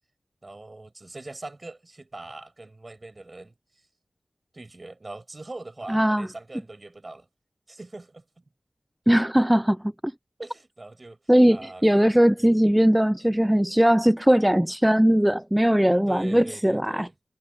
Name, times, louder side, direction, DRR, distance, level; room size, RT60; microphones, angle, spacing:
voice 1, 0.4-3.5 4.5-7.3 7.7-8.4 10.4-11.2 11.5-11.8 12.4-12.6 16.1-17.1, right 2 dB, 30° right, 6.5 m, -42 dB
voice 2, 5.9-6.3 9.1-10.1 11.3-17.1, equal, 5° right, 0.3 m, -20 dB
wide cardioid pair, 90°, 0 cm